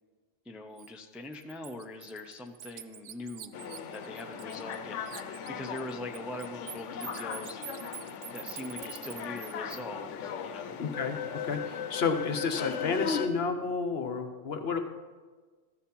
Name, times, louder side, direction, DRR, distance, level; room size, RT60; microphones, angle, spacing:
voice 1, 0.5-3.6 3.9-8.1 8.3-10.7, left 1 dB, ahead, 4 dB, 0.4 m, -42 dB
Bird, 0.8-0.9 1.3-4.8 5.1-9.8, right 11 dB, 70° right, 0.8 m, -45 dB
sound 1, 3.5-13.3, left 7 dB, 85° left, 1.0 m, -38 dB
voice 2, 10.8-11.2 11.4-14.8, left 5 dB, 60° left, 7 dB, 1.1 m, -31 dB
13.5 x 7.1 x 5.4 m, 1.4 s
omnidirectional pair, 1.2 m